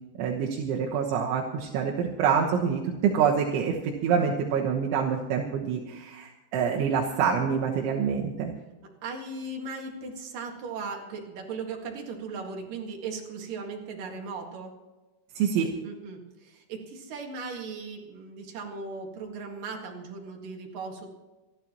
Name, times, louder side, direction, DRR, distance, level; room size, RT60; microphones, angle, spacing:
voice 1, 0.2-8.5 15.4-15.7, right 7 dB, 80° right, -2 dB, 3.6 m, -26 dB
voice 2, 9.0-14.7 15.8-21.1, right 4 dB, 55° right, 2 dB, 3.1 m, -37 dB
27.5 x 12.0 x 3.0 m, 1.2 s
omnidirectional pair, 5.4 m